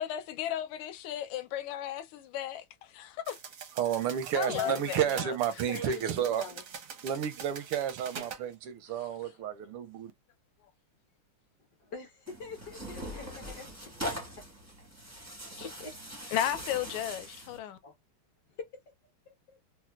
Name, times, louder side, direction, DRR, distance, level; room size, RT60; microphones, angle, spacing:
voice 1, 0.0-2.6 2.9-3.4 4.4-5.3 15.6-15.7 16.3-17.8, left 11 dB, 80° left, 1.4 m, -34 dB
sound 1, 3.2-8.4, right 6 dB, 65° right, 0.8 m, -44 dB
voice 2, 3.8-6.4 7.0-10.1, right 9 dB, 85° right, 1.6 m, -31 dB
voice 3, 4.5-4.8 5.7-6.6 11.8-13.7 14.3-14.4 15.4-15.9 17.8-17.9 19.3-19.6, left 4 dB, 65° left, 1.1 m, -44 dB
Tearing, 12.3-17.6, equal, 20° right, 0.4 m, -41 dB
4.3 x 2.1 x 2.2 m
omnidirectional pair, 2.4 m